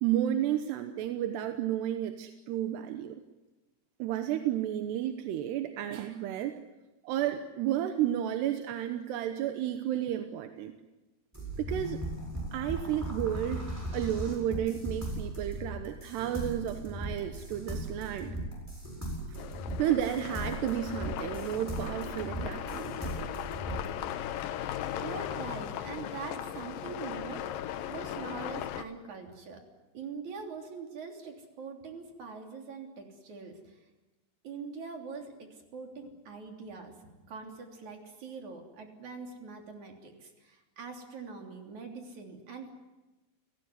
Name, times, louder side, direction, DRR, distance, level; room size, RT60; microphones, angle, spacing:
voice 1, 0.0-3.2 4.0-6.6 7.0-10.7 11.6-12.0 12.5-18.4 19.8-23.1, right 11 dB, 90° right, 7 dB, 3.2 m, -32 dB
sound 1, 11.3-23.9, right 1 dB, 5° right, 7.3 m, -38 dB
sound 2, 19.4-28.8, left 11 dB, 70° left, 2.4 m, -38 dB
voice 2, 25.0-29.6 29.9-33.8 34.4-42.7, right 4 dB, 50° right, 3 dB, 4.4 m, -43 dB
30.0 x 17.5 x 9.7 m, 1.1 s
omnidirectional pair, 4.7 m